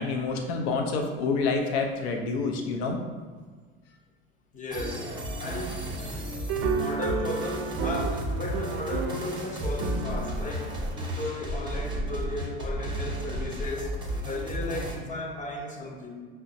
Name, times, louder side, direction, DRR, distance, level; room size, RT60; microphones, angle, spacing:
voice 1, 0.0-3.0, left 4 dB, 70° left, 3 dB, 0.6 m, -28 dB
voice 2, 4.5-5.1 5.4-5.9 6.7-13.9 14.2-16.2, left 2 dB, 25° left, 0 dB, 0.8 m, -35 dB
sound 1, 4.7-15.0, right 1 dB, 15° right, 0.7 m, -33 dB
sound 2, 6.5-12.0, right 6 dB, 45° right, 0.4 m, -34 dB
5.4 x 2.1 x 2.6 m, 1.5 s
hypercardioid pair, 65°, 32 cm